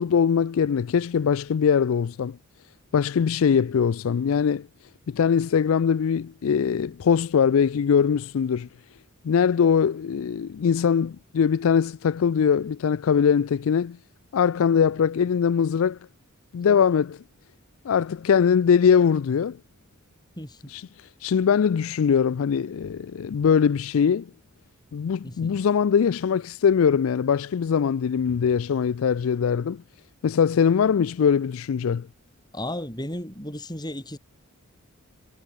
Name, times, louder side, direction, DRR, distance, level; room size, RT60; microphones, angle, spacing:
voice 1, 0.0-2.4 2.9-4.7 5.1-8.7 9.2-14.0 14.3-16.0 16.5-17.2 17.8-19.6 20.7-20.8 21.2-24.3 24.9-29.8 30.2-32.1, left 7 dB, 70° left, 0.4 m, -22 dB
voice 2, 25.2-25.6 32.5-34.2, left 1 dB, 20° left, 3.8 m, -34 dB
head